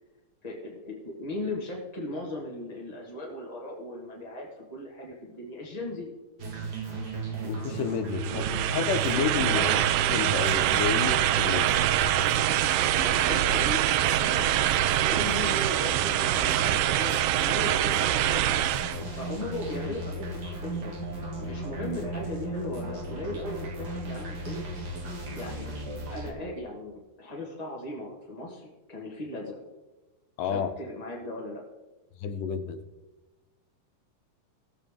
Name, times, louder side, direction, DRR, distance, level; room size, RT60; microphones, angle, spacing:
voice 1, 0.4-6.1 8.2-8.5 9.4-9.8 13.0-14.5 14.9-18.5 19.1-21.0 21.3-24.6 25.3-25.7 26.0-29.6 30.4-31.6, left 1 dB, 45° left, -2 dB, 0.5 m, -37 dB
sound 1, 6.4-26.3, right 3 dB, 45° right, 1.3 m, -36 dB
voice 2, 7.4-9.6 10.1-11.7 18.9-19.1 19.9-20.0 30.4-30.7 32.2-32.8, left 7 dB, 80° left, 7 dB, 2.4 m, -30 dB
sound 2, 8.1-19.0, right 12 dB, 80° right, 2.0 m, -25 dB
18.5 x 7.2 x 3.6 m, 1.1 s
omnidirectional pair, 3.7 m